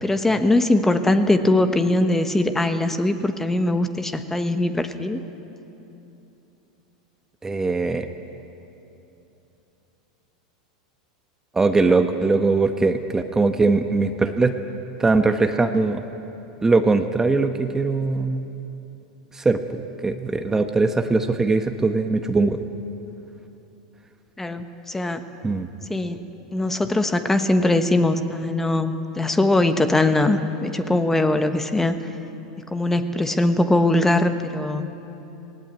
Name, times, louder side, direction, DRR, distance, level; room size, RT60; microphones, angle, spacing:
voice 1, 0.0-5.2 11.9-12.0 24.4-25.2 25.9-26.2 26.5-32.0 32.7-34.9, left 2 dB, 10° left, 9 dB, 1.2 m, -21 dB
voice 2, 7.4-8.1 11.5-14.6 15.0-16.0 16.6-18.5 19.3-22.6 25.4-25.7, right 3 dB, 15° right, 7 dB, 1.0 m, -21 dB
19.0 x 17.0 x 9.5 m, 2.9 s
hypercardioid pair, 100°, 3 cm